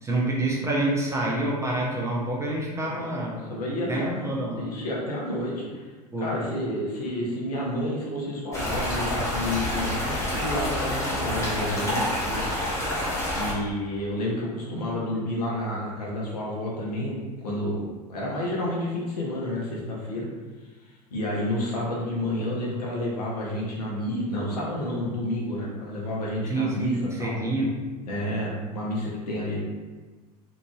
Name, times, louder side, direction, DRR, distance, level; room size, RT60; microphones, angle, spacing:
voice 1, 0.0-3.5 3.9-4.7 6.1-6.5 26.5-27.7, right 2 dB, 15° right, -3 dB, 0.5 m, -27 dB
voice 2, 3.0-5.8 6.2-12.4 13.3-20.3 21.1-27.4 28.0-29.6, left 1 dB, 70° left, -4 dB, 0.8 m, -30 dB
sound 1, 8.5-13.5, left 1 dB, 15° left, 1.0 m, -28 dB
2.9 x 2.5 x 2.3 m, 1.3 s
figure-of-eight pair, 80°, 21 cm